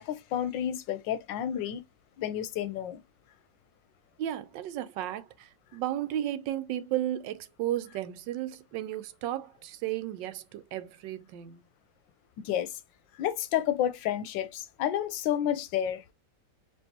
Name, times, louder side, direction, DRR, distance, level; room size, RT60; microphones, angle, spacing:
voice 1, 0.0-1.8 2.2-3.0 12.4-12.7 13.2-16.0, left 10 dB, 85° left, 1.4 m, -30 dB
voice 2, 4.2-11.6, right 12 dB, 85° right, 1.3 m, -34 dB
4.5 x 3.0 x 2.8 m
omnidirectional pair, 1.9 m